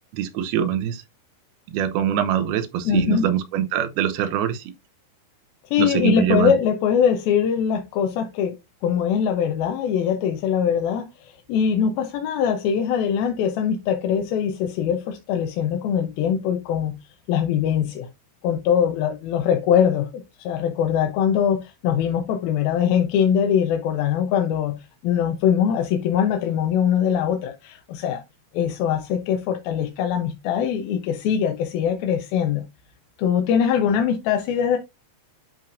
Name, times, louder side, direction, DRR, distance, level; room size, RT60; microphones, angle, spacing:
voice 1, 0.1-1.0 1.7-4.7 5.8-6.5, right 10 dB, 80° right, 2.7 m, -23 dB
voice 2, 2.9-3.3 5.7-8.6 8.8-17.0 17.3-18.1 18.4-28.2 28.5-32.7 33.2-34.8, left 8 dB, 75° left, 2.6 m, -22 dB
11.0 x 4.4 x 2.6 m
omnidirectional pair, 4.5 m